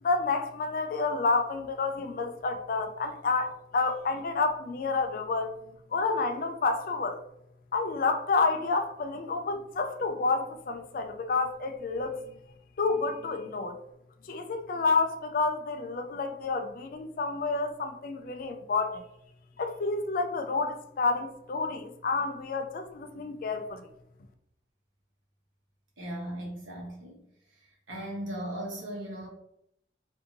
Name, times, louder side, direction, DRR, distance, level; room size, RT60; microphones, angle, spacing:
voice 1, 0.0-5.5 5.9-7.2 7.7-12.2 12.8-13.7 14.3-19.0 19.6-23.8, left 3 dB, 45° left, 6 dB, 0.3 m, -29 dB
voice 2, 26.0-27.2 27.9-29.3, right 1 dB, 90° right, -3 dB, 1.1 m, -37 dB
2.6 x 2.6 x 2.6 m, 0.77 s
head